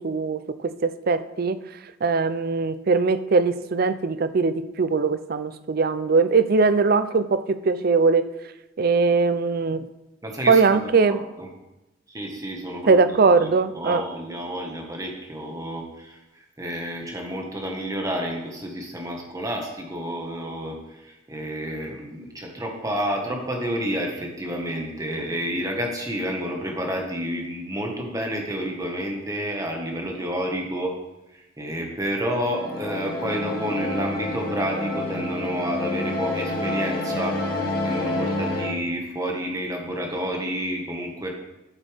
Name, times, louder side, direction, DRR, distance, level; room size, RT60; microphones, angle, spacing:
voice 1, 0.0-1.6 2.0-8.3 8.8-9.8 10.5-11.2 12.9-14.0, right 4 dB, 50° right, 13 dB, 0.5 m, -21 dB
voice 2, 10.2-11.5 12.1-13.0 13.4-16.2 16.6-31.0 31.3-37.4 37.8-41.3, equal, 20° right, 1 dB, 1.6 m, -30 dB
sound 1, 32.4-38.7, left 2 dB, 50° left, 2.0 m, -28 dB
11.0 x 8.2 x 3.5 m, 0.99 s
head